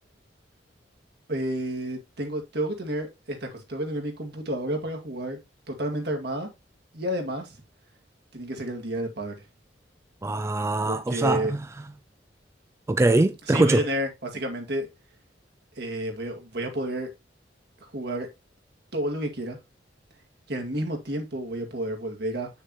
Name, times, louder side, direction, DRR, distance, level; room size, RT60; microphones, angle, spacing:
voice 1, 1.3-5.4 5.7-6.5 6.9-7.6 8.3-9.3 10.9-11.5 13.4-14.9 15.8-17.1 17.9-18.3 18.9-19.6 20.5-22.5, right 1 dB, 65° right, 2.1 m, -30 dB
voice 2, 10.2-11.5 12.9-13.8, right 2 dB, 15° right, 0.3 m, -22 dB
7.7 x 6.6 x 3.0 m
head